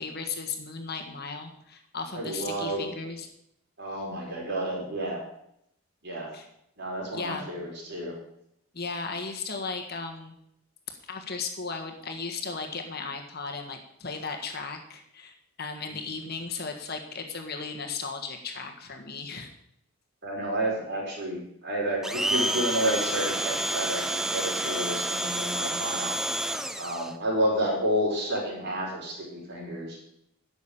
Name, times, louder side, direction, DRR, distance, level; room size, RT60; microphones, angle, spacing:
voice 1, 0.0-3.3 6.3-6.5 7.1-7.5 8.7-10.3 11.1-19.5, left 4 dB, 45° left, 4 dB, 1.5 m, -36 dB
voice 2, 2.1-2.9 3.8-5.2 6.0-6.3 6.8-8.1 20.2-26.2 26.8-30.0, right 1 dB, 50° right, -3 dB, 5.1 m, -30 dB
Domestic sounds home sounds, 22.0-27.1, right 1 dB, ahead, 0.5 m, -29 dB
11.5 x 7.2 x 8.8 m, 0.75 s
head